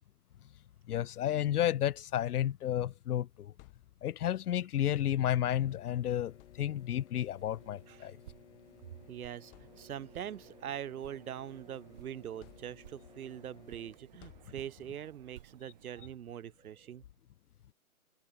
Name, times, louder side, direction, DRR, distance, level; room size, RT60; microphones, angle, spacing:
voice 1, 0.9-3.5 4.0-8.2, left 11 dB, 90° left, 0.5 m, -32 dB
sound 1, 3.2-4.4 5.6-5.8 6.3-7.1 8.2-8.4 8.9-9.0 9.5-10.3 10.8-11.8 12.4-13.2 14.2-15.1, left 32 dB, 20° left, 3.3 m, -61 dB
sound 2, 4.8-14.0, left 8 dB, 50° left, 8.0 m, -59 dB
sound 3, 7.4-16.1, right 14 dB, 30° right, 2.5 m, -57 dB
voice 2, 9.1-17.0, right 10 dB, 75° right, 0.7 m, -43 dB
hypercardioid pair, 160°, 44 cm